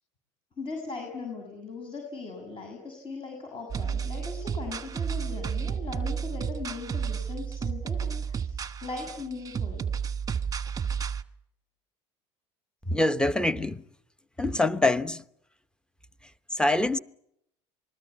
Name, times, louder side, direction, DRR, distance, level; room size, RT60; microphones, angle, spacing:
voice 1, 0.6-9.8, left 3 dB, 35° left, 7.4 m, -39 dB
sound 1, 3.7-11.2, right 7 dB, 25° right, 1.3 m, -32 dB
voice 2, 12.9-13.8 14.4-15.2 16.6-17.0, left 2 dB, 5° left, 1.0 m, -24 dB
27.5 x 21.0 x 8.5 m
hypercardioid pair, 85°, 15 cm